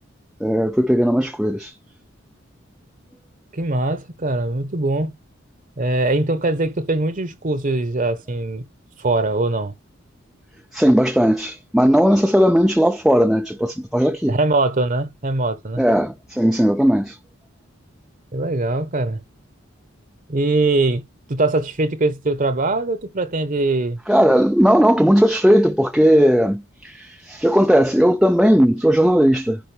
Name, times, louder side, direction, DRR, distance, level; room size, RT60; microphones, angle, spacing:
voice 1, 0.4-1.7 10.7-14.4 15.8-17.2 24.1-29.6, equal, 5° right, 0.4 m, -17 dB
voice 2, 3.5-5.1 5.8-8.6 9.0-9.7 14.3-15.8 18.3-19.2 20.3-21.0 21.3-24.0, right 2 dB, 45° right, 1.0 m, -22 dB
10.5 x 4.6 x 3.4 m
head